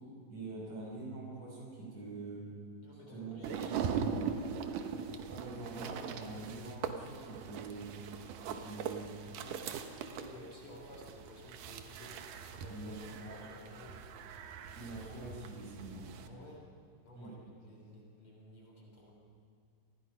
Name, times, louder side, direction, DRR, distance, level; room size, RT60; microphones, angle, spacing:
voice 1, 0.3-2.4 3.1-3.9 5.3-7.9 8.4-9.7 12.7-13.3 14.8-16.0 17.1-17.3, right 2 dB, 55° right, -3 dB, 7.1 m, -45 dB
voice 2, 2.8-4.0 10.1-14.3 16.2-16.7 17.0-19.1, left 1 dB, 40° left, -2 dB, 4.4 m, -53 dB
sound 1, 3.4-16.3, right 7 dB, 85° right, 2.7 m, -41 dB
27.5 x 20.0 x 5.6 m, 2.4 s
omnidirectional pair, 3.6 m